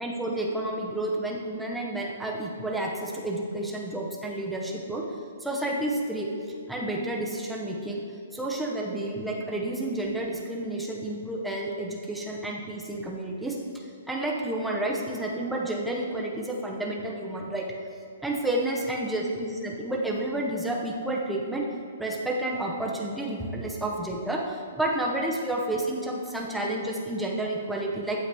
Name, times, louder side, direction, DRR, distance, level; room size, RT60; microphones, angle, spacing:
voice 1, 0.0-5.0 5.4-6.3 6.7-8.0 8.3-13.6 14.1-17.7 18.2-21.6 22.0-28.2, right 1 dB, ahead, -2 dB, 0.8 m, -30 dB
14.5 x 8.1 x 3.5 m, 2.5 s
hypercardioid pair, 180°, 0 cm